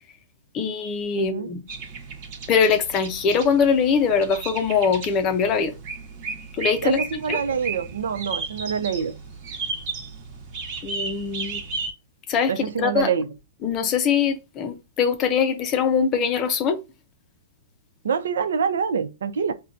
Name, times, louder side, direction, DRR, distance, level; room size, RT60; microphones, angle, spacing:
voice 1, 0.5-1.6 2.5-5.8 6.5-7.0 7.3-7.4 10.8-11.6 12.3-13.1 13.6-16.8, left 6 dB, 25° left, 0.5 m, -22 dB
voice 2, 1.2-1.5 6.8-9.1 12.5-13.3 18.0-19.5, right 6 dB, 90° right, 0.6 m, -25 dB
sound 1, 1.7-11.9, right 4 dB, 35° right, 1.0 m, -34 dB
5.6 x 2.2 x 2.5 m
hypercardioid pair, 165°, 0 cm